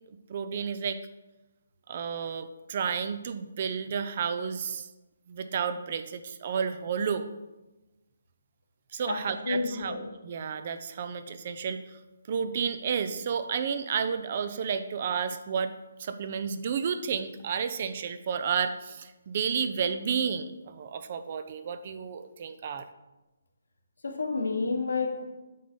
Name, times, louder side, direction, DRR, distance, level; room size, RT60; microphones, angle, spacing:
voice 1, 0.3-1.0 1.9-4.9 5.3-7.2 8.9-10.0 10.2-12.0 12.3-15.7 16.0-22.8, right 6 dB, 45° right, 10 dB, 0.5 m, -31 dB
voice 2, 9.1-10.1 24.0-25.2, left 3 dB, 75° left, 3 dB, 1.4 m, -30 dB
7.7 x 4.0 x 5.1 m, 1.1 s
figure-of-eight pair, 150°, 0 cm